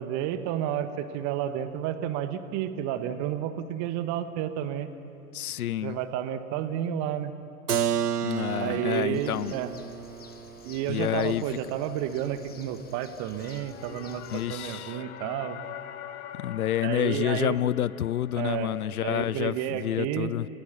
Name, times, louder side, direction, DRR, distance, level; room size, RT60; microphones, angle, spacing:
voice 1, 0.0-4.9 5.8-7.3 8.6-9.7 10.6-15.6 16.8-17.6 18.3-18.7 19.0-20.3, right 10 dB, 35° right, 1.5 m, -31 dB
voice 2, 5.3-6.0 8.2-9.5 10.9-11.4 14.3-15.0 16.4-20.5, left 12 dB, 70° left, 0.6 m, -29 dB
Keyboard (musical), 7.7-13.3, right 8 dB, 85° right, 0.6 m, -33 dB
Bird, 9.1-14.7, left 6 dB, 20° left, 1.4 m, -52 dB
sound 1, 13.0-19.9, left 11 dB, 45° left, 1.4 m, -45 dB
30.0 x 18.5 x 6.8 m
figure-of-eight pair, 95°, 45 cm